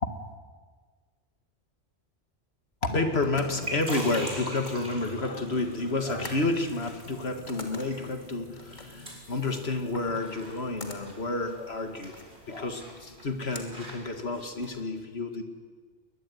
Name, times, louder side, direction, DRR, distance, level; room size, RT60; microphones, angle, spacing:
voice 1, 2.8-12.2 12.5-15.4, left 2 dB, 60° left, 6 dB, 2.4 m, -30 dB
sound 1, 2.8-14.7, left 2 dB, 40° left, 2.9 m, -47 dB
sound 2, 3.2-14.8, right 1 dB, 65° right, 5.9 m, -44 dB
22.0 x 21.0 x 9.5 m, 1.5 s
omnidirectional pair, 1.2 m